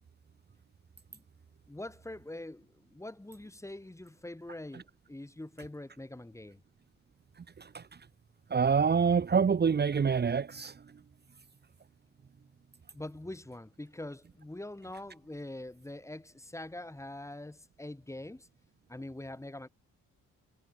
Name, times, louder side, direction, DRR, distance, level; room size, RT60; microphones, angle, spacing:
voice 1, 1.7-6.6 12.9-18.5 18.9-19.7, left 1 dB, 10° left, 2.5 m, -44 dB
voice 2, 7.4-7.9 8.5-10.8, right 6 dB, 35° right, 1.3 m, -27 dB
cardioid pair, 90°, 30 cm